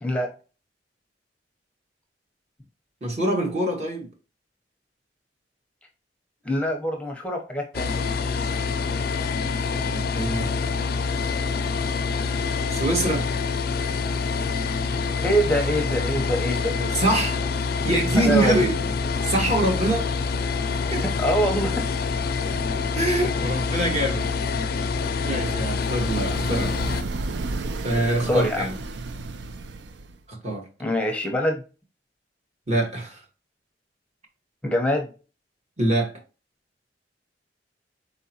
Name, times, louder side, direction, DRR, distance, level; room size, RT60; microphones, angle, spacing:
voice 1, 0.0-0.3 6.4-8.0 15.2-16.9 17.9-18.7 21.0-21.8 28.3-28.6 30.8-31.6 34.6-35.1, equal, 5° left, 0.7 m, -24 dB
voice 2, 3.0-4.1 9.8-10.5 12.7-13.3 16.9-17.4 17.8-18.7 19.2-20.1 20.9-21.0 22.9-24.3 24.7-25.0 25.2-26.8 27.8-28.7 30.3-30.7 32.7-33.2 35.8-36.1, right 1 dB, 40° right, 1.3 m, -24 dB
mulch blower, 7.7-27.0, left 4 dB, 60° left, 0.4 m, -26 dB
sound 1, 25.5-30.2, right 3 dB, 70° right, 0.4 m, -33 dB
4.1 x 3.9 x 2.8 m
head